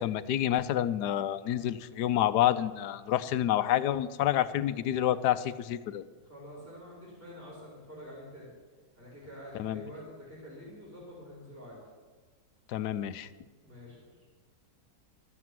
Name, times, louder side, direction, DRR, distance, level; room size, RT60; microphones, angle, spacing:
voice 1, 0.0-6.0 9.5-9.8 12.7-13.3, left 12 dB, 85° left, 13 dB, 1.2 m, -28 dB
voice 2, 6.2-8.5 9.0-11.8 13.6-14.1, equal, 10° right, -8 dB, 4.3 m, -47 dB
13.5 x 8.1 x 7.6 m, 1.4 s
omnidirectional pair, 1.7 m